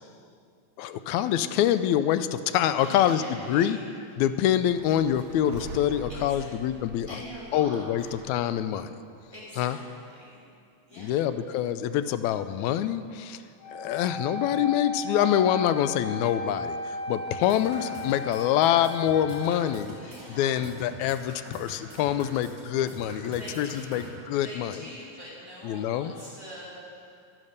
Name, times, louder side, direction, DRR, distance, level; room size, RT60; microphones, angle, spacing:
voice 1, 0.8-3.2 3.5-3.8 4.2-7.1 7.5-9.0 9.6-9.8 11.0-13.4 13.7-19.9 20.3-24.8 25.6-26.1, left 11 dB, 80° left, 12 dB, 1.8 m, -25 dB
voice 2, 2.8-3.8 6.1-8.2 9.3-10.4 10.8-11.3 19.3-20.6 23.4-27.0, equal, 10° left, -8 dB, 3.7 m, -44 dB
sound 1, 4.4-8.6, right 4 dB, 80° right, 1.1 m, -43 dB
Wind instrument woodwind instrument, 13.6-19.5, left 2 dB, 50° left, 4.2 m, -35 dB
sound 2, 17.3-24.1, right 2 dB, 30° right, 3.0 m, -45 dB
11.0 x 10.5 x 6.6 m, 2.4 s
omnidirectional pair, 3.4 m